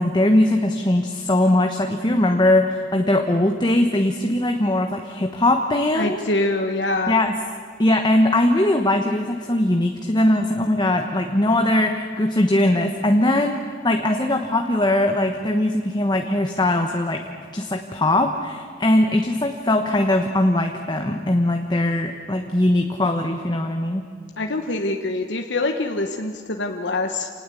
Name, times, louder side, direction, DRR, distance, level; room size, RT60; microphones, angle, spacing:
voice 1, 0.0-6.2 7.1-7.4 7.8-17.2 17.5-24.0, left 1 dB, 25° left, 4 dB, 1.2 m, -20 dB
voice 2, 5.9-7.2 24.4-27.3, left 2 dB, 70° left, 4 dB, 1.3 m, -24 dB
27.0 x 19.0 x 8.5 m, 2.1 s
head